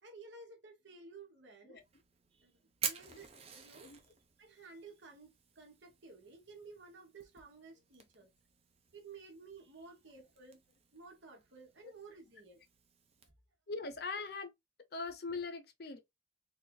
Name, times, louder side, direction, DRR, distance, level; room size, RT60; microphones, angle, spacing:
voice 1, 0.0-1.8 2.3-8.3 8.9-10.6 10.9-12.6 13.2-13.3, right 4 dB, 75° right, 1.3 m, -54 dB
Fire, 1.8-13.3, right 7 dB, 30° right, 0.6 m, -49 dB
voice 2, 13.7-14.5 14.9-16.0, left 4 dB, 55° left, 0.7 m, -41 dB
4.2 x 2.6 x 2.2 m
head